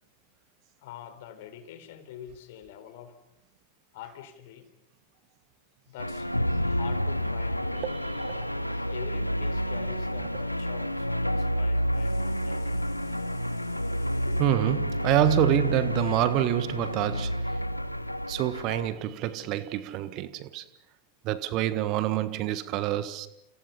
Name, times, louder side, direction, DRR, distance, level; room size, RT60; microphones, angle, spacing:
voice 1, 0.8-3.2 3.9-4.7 5.9-7.8 8.9-14.4, left 9 dB, 50° left, 4.0 m, -45 dB
sound 1, 6.0-18.9, equal, 90° left, 1.3 m, -29 dB
voice 2, 7.8-8.5 14.4-17.6 18.3-20.7 21.2-23.3, right 14 dB, 40° right, 1.5 m, -27 dB
30.0 x 30.0 x 5.6 m
figure-of-eight pair, 90°, 0 cm